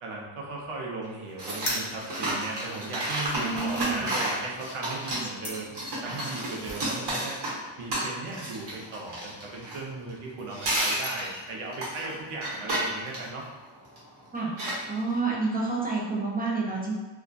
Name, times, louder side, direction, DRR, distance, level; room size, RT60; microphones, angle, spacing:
voice 1, 0.0-5.7 6.0-7.4 7.8-13.5, right 3 dB, 90° right, -2 dB, 0.7 m, -37 dB
sound 1, 1.4-10.2 10.5-14.0 14.6-15.1, right 1 dB, 55° right, 0.9 m, -32 dB
sound 2, 1.5-6.8, left 1 dB, 35° left, 0.9 m, -39 dB
voice 2, 3.3-4.2 14.3-14.5 14.9-16.9, right 3 dB, 20° right, -4 dB, 0.4 m, -29 dB
2.5 x 2.3 x 2.2 m, 1.2 s
wide cardioid pair, 110°, 50 cm